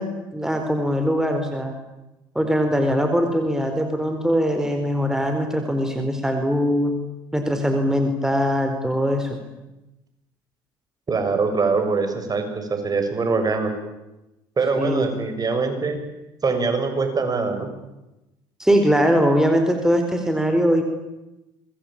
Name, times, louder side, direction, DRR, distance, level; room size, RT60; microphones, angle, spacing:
voice 1, 0.0-1.8 2.3-7.0 7.3-9.4 14.8-15.2 18.6-20.8, equal, 5° right, 5 dB, 4.5 m, -21 dB
voice 2, 11.1-13.7 14.6-16.0 16.4-17.7, right 4 dB, 35° right, 6 dB, 6.8 m, -23 dB
26.0 x 22.0 x 9.0 m, 0.99 s
hypercardioid pair, 65°, 12 cm